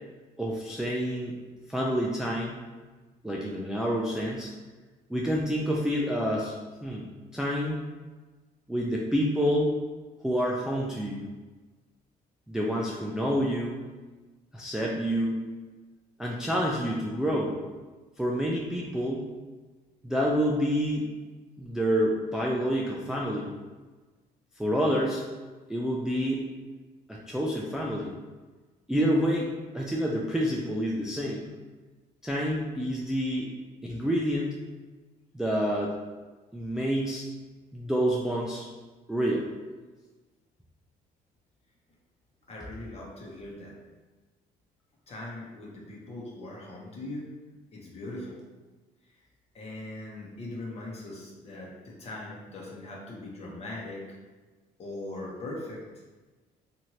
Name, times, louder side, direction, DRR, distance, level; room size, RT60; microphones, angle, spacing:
voice 1, 0.4-1.4 1.7-2.6 3.2-4.5 5.1-6.5 6.8-7.0 7.3-7.8 8.7-9.7 10.2-11.3 12.5-13.8 14.5-15.4 16.2-17.6 18.2-19.3 20.0-21.1 21.6-23.5 24.6-25.2 25.7-26.4 27.1-28.1 28.9-31.5 32.2-33.5 33.8-34.6 35.3-35.9 36.5-37.2 37.7-38.7 39.1-39.5, equal, 5° right, -3 dB, 0.3 m, -28 dB
voice 2, 42.5-43.8 45.1-47.3 47.7-48.4 49.5-54.2 54.8-55.8, left 2 dB, 40° left, -3 dB, 0.9 m, -40 dB
3.0 x 2.6 x 2.7 m, 1.3 s
cardioid pair, 110°, 17 cm